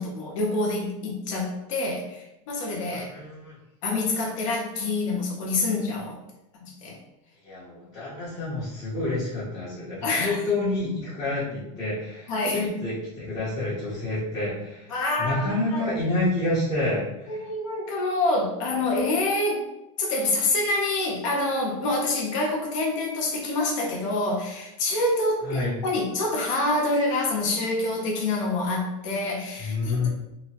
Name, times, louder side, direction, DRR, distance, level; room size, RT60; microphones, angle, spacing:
voice 1, 0.0-3.1 3.8-6.2 6.6-7.0 10.0-10.4 12.3-12.6 14.9-15.8 17.3-19.6 20.0-30.1, left 2 dB, 65° left, -1 dB, 0.8 m, -26 dB
voice 2, 2.9-3.5 7.4-17.4 25.4-25.7 29.6-30.1, left 2 dB, 20° left, -10 dB, 0.7 m, -28 dB
2.8 x 2.0 x 2.8 m, 0.89 s
supercardioid pair, 165°, 18 cm